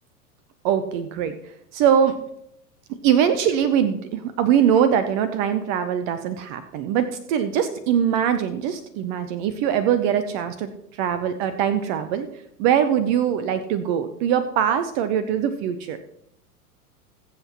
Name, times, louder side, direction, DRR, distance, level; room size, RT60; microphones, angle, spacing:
voice 1, 0.6-1.4 1.7-2.2 2.9-12.3 12.6-16.0, right 8 dB, 30° right, 11 dB, 0.7 m, -22 dB
21.0 x 7.6 x 2.9 m, 0.75 s
figure-of-eight pair, 95°, 46 cm